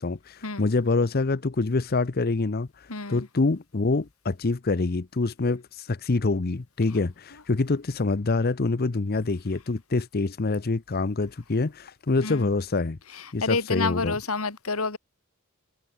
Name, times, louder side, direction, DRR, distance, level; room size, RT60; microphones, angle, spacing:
voice 1, 0.0-13.0 13.3-14.2, left 3 dB, 45° left, 0.7 m, -26 dB
voice 2, 2.9-3.3 12.2-12.5 13.4-15.0, left 3 dB, 85° left, 2.7 m, -28 dB
head